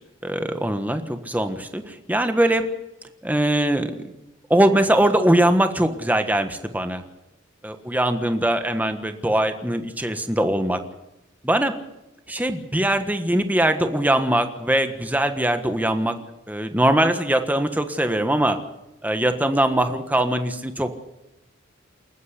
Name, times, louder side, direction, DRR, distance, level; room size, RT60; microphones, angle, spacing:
voice 1, 0.2-2.6 3.2-3.9 4.5-7.0 7.6-10.8 11.4-11.7 12.3-16.2 16.5-18.6 19.0-21.0, right 1 dB, 10° right, 7 dB, 1.4 m, -21 dB
28.5 x 9.6 x 9.9 m, 0.93 s
head